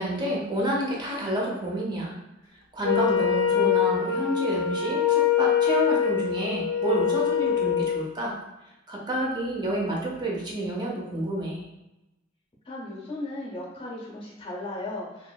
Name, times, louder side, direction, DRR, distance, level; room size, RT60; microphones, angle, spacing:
voice 1, 0.0-2.1 2.7-8.3 8.9-11.6, right 1 dB, 20° right, -3 dB, 0.6 m, -29 dB
Wind instrument woodwind instrument, 2.8-8.1, left 8 dB, 65° left, 0.4 m, -24 dB
voice 2, 12.6-15.3, left 2 dB, 25° left, -4 dB, 0.6 m, -36 dB
2.8 x 2.5 x 2.3 m, 0.97 s
head